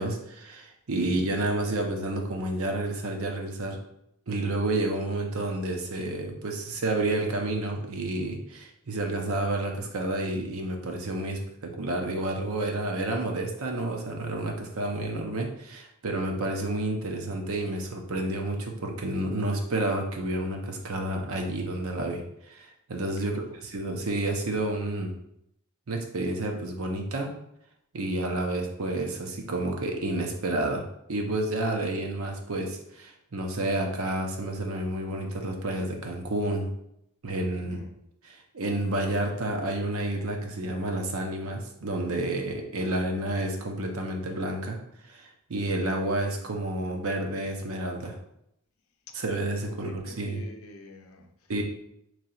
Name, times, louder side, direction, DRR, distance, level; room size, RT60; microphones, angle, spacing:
voice 1, 0.0-3.8 4.3-22.2 22.5-23.3 23.7-25.1 25.9-27.3 27.9-30.8 31.1-36.7 37.2-37.8 38.3-44.8 45.0-48.1 49.1-50.4 51.5-51.6, right 2 dB, 70° right, 2 dB, 0.7 m, -30 dB
voice 2, 23.2-23.6 37.6-37.9 49.8-51.6, left 3 dB, 70° left, 4 dB, 0.6 m, -46 dB
3.1 x 2.8 x 4.1 m, 0.79 s
head